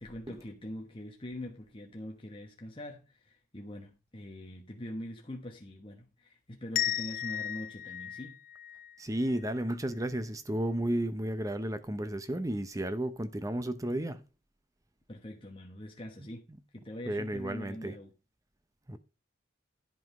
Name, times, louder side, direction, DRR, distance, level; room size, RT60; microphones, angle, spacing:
voice 1, 0.0-8.4 15.1-16.5 16.7-18.1, left 1 dB, 25° left, 1.1 m, -43 dB
sound 1, 6.7-9.5, left 11 dB, 45° left, 0.5 m, -35 dB
voice 2, 9.0-14.2 17.1-17.9 18.9-19.0, right 1 dB, 15° right, 0.7 m, -33 dB
11.0 x 5.5 x 5.4 m
head